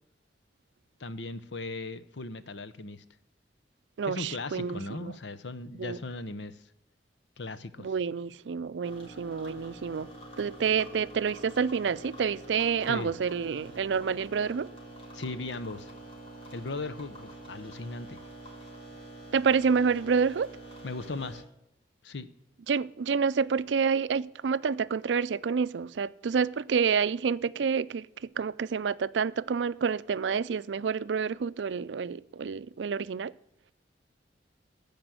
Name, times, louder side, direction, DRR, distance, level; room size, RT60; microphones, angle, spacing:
voice 1, 1.0-3.0 4.0-6.6 7.4-7.9 12.9-13.1 15.1-15.9 16.5-18.2 20.8-21.4 22.0-22.3, left 3 dB, 80° left, 0.8 m, -38 dB
voice 2, 4.0-5.1 5.7-6.0 7.8-10.1 10.4-14.7 19.3-20.5 22.7-33.3, right 6 dB, 85° right, 0.4 m, -28 dB
sound 1, 8.8-21.4, right 1 dB, 30° left, 3.3 m, -46 dB
15.0 x 5.2 x 7.8 m
head